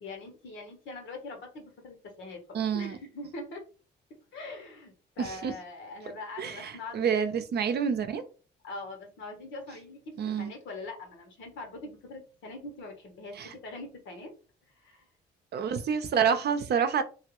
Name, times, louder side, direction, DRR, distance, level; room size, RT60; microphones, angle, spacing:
voice 1, 0.0-3.6 4.3-7.2 8.6-14.3 14.7-15.1, left 2 dB, 75° left, 1.2 m, -42 dB
voice 2, 2.5-3.0 5.2-5.5 6.4-8.2 10.2-10.5 13.4-13.5 15.5-17.0, right 7 dB, 55° right, 0.6 m, -28 dB
2.9 x 2.7 x 3.0 m
cardioid pair, 90°, 20 cm